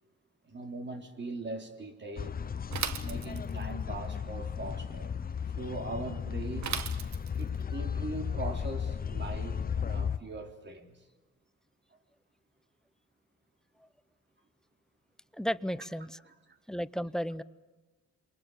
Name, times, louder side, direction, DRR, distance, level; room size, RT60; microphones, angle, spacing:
voice 1, 0.4-2.4 3.0-5.1 5.5-6.8 7.4-11.1 16.3-16.6, right 2 dB, 35° right, 3.8 m, -41 dB
sound 1, 2.2-10.2, left 7 dB, 30° left, 0.8 m, -35 dB
Bicycle / Mechanisms, 2.7-3.7 6.6-7.6, right 8 dB, 65° right, 1.5 m, -36 dB
voice 2, 15.3-16.1 16.7-17.4, equal, ahead, 0.7 m, -33 dB
28.0 x 23.0 x 7.0 m
cardioid pair, 90°, 30 cm